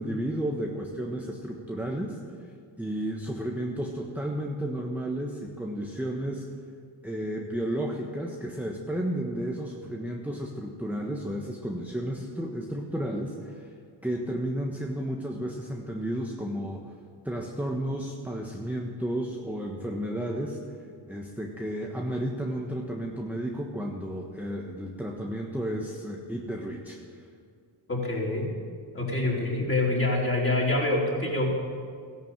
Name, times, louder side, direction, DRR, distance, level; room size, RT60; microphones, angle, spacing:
voice 1, 0.0-6.5 7.0-13.7 14.0-16.9 17.2-27.3, right 1 dB, 5° right, 0 dB, 1.3 m, -33 dB
voice 2, 27.9-28.5 28.9-31.5, left 2 dB, 25° left, -3 dB, 4.4 m, -26 dB
14.5 x 11.0 x 7.6 m, 2.2 s
cardioid pair, 70°, 49 cm